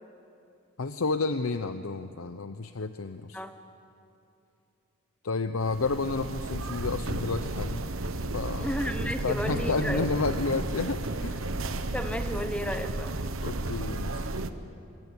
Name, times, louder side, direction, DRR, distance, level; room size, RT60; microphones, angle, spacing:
voice 1, 0.8-3.4 5.2-7.8 8.3-8.7 9.2-11.4 13.4-14.3, left 3 dB, 80° left, 9 dB, 0.8 m, -31 dB
sound 1, 5.6-14.5, right 2 dB, 70° right, 1.2 m, -33 dB
voice 2, 8.6-10.1 11.8-13.1, equal, 5° left, 7 dB, 1.2 m, -33 dB
26.0 x 22.5 x 8.3 m, 2.7 s
head